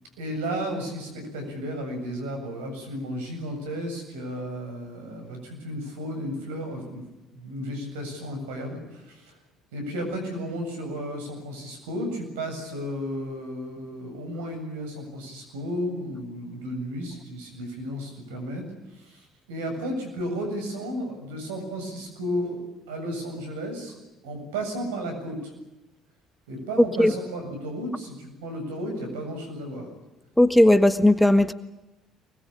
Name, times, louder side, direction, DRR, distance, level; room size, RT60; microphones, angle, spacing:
voice 1, 0.2-7.0 7.3-9.3 9.7-22.6 22.9-24.0 24.2-25.5 26.5-29.9, equal, 80° right, 7.6 m, -33 dB
voice 2, 30.4-31.5, left 1 dB, 5° left, 1.5 m, -17 dB
24.5 x 21.0 x 8.7 m
hypercardioid pair, 60°, 0 cm